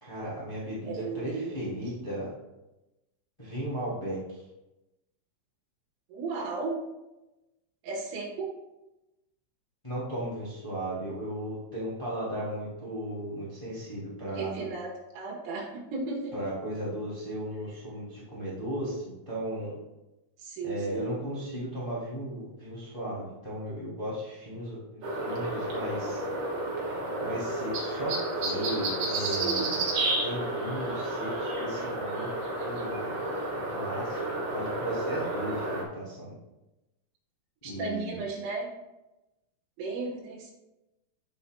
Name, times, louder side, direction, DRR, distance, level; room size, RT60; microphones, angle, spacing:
voice 1, 0.0-2.3 3.4-4.4 9.8-14.7 16.3-19.8 20.6-24.8 25.2-26.2 27.2-29.8 30.2-32.3 32.6-33.2 33.7-34.2 34.5-36.3 37.6-38.2, right 1 dB, 40° left, -8 dB, 0.4 m, -36 dB
voice 2, 0.9-1.7 6.1-6.8 7.8-8.5 14.4-16.4 20.4-21.2 29.2-29.8 37.6-38.7 39.8-40.5, right 3 dB, 85° right, -2 dB, 4.0 m, -35 dB
sound 1, 25.0-35.8, right 2 dB, 60° right, 2.2 m, -31 dB
15.0 x 5.8 x 2.2 m, 0.99 s
omnidirectional pair, 5.8 m